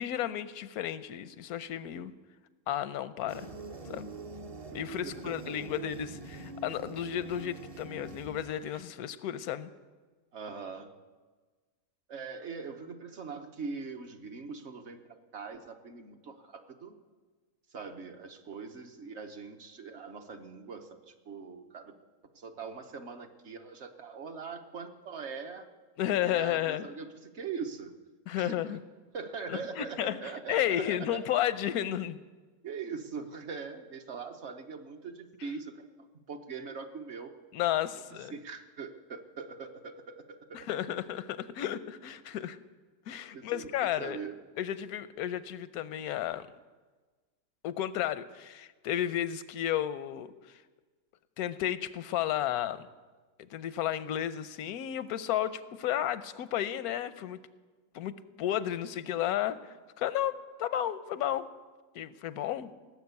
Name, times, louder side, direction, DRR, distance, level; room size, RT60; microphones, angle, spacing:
voice 1, 0.0-2.1 2.7-3.5 3.9-4.1 4.7-9.7 26.0-26.9 28.3-28.8 29.5-30.2 30.5-32.2 37.5-38.3 40.5-42.6 43.1-44.2 44.6-46.5 47.6-50.6 51.4-52.9 53.5-57.4 57.9-61.5 61.9-62.7, left 11 dB, 85° left, 14 dB, 1.1 m, -33 dB
sound 1, 3.3-8.8, right 3 dB, 35° right, 0.6 m, -44 dB
voice 2, 5.0-5.6 10.3-10.9 12.1-16.9 17.7-21.9 22.3-25.7 26.2-27.9 28.3-28.6 29.1-31.3 32.6-35.9 36.3-37.3 38.3-40.7 43.3-44.4, right 5 dB, 55° right, 6 dB, 1.2 m, -42 dB
18.0 x 7.3 x 8.1 m, 1.3 s
omnidirectional pair, 1.5 m